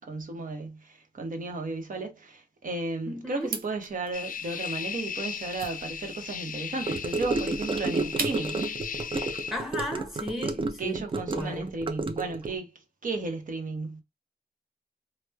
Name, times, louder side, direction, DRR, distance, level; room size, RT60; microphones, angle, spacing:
voice 1, 0.0-8.7 10.8-12.7 13.0-14.0, right 3 dB, 65° right, 0.9 m, -34 dB
voice 2, 3.1-3.6 9.5-11.7, equal, ahead, 0.8 m, -35 dB
sound 1, 3.4-8.7, right 5 dB, 85° right, 0.6 m, -40 dB
sound 2, 4.1-9.5, left 7 dB, 65° left, 0.4 m, -36 dB
Gurgling / Car passing by / Sink (filling or washing), 6.9-12.5, right 3 dB, 35° right, 0.5 m, -31 dB
3.0 x 2.1 x 2.2 m
cardioid pair, 55°, 15 cm